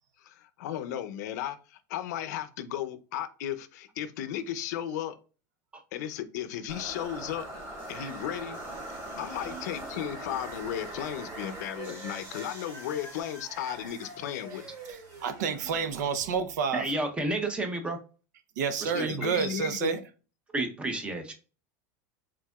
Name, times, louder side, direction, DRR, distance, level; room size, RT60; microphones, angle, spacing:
voice 1, 0.2-5.2 5.9-7.5 7.9-8.6 8.9-14.7 18.9-20.0, left 10 dB, 75° left, 0.5 m, -35 dB
sound 1, 6.7-15.7, right 1 dB, 30° right, 1.8 m, -42 dB
sound 2, 9.1-16.7, right 2 dB, 50° right, 2.3 m, -48 dB
voice 2, 14.9-16.9 18.6-20.0, right 6 dB, 90° right, 0.6 m, -29 dB
voice 3, 16.7-18.0 18.8-19.3 20.5-21.3, right 2 dB, 10° right, 0.7 m, -31 dB
4.7 x 3.8 x 2.3 m
supercardioid pair, 150°, 9 cm